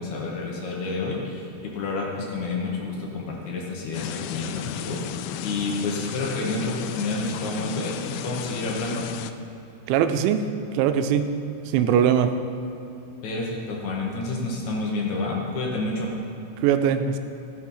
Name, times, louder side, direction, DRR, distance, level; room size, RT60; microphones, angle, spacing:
voice 1, 0.0-5.0 5.4-9.1 13.2-16.1, left 3 dB, 70° left, -2 dB, 1.8 m, -29 dB
sound 1, 3.9-9.3, left 10 dB, 85° left, 2.8 m, -34 dB
voice 2, 9.9-10.4 10.7-11.3 11.7-12.3 16.6-17.2, right 9 dB, 90° right, 8 dB, 3.0 m, -20 dB
13.5 x 6.6 x 5.6 m, 2.9 s
omnidirectional pair, 5.2 m